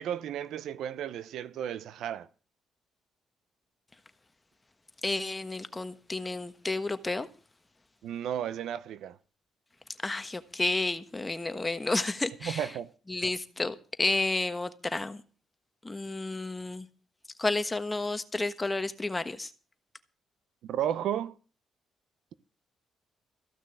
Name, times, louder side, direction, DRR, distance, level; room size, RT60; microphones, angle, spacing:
voice 1, 0.0-2.3 8.0-9.2 12.4-12.9 20.6-21.4, right 10 dB, 75° right, 0.8 m, -33 dB
voice 2, 5.0-7.3 10.0-12.7 13.1-15.2 15.8-16.9 17.4-19.5, left 2 dB, 20° left, 1.3 m, -31 dB
15.0 x 6.4 x 9.0 m
cardioid pair, 90°, 0 cm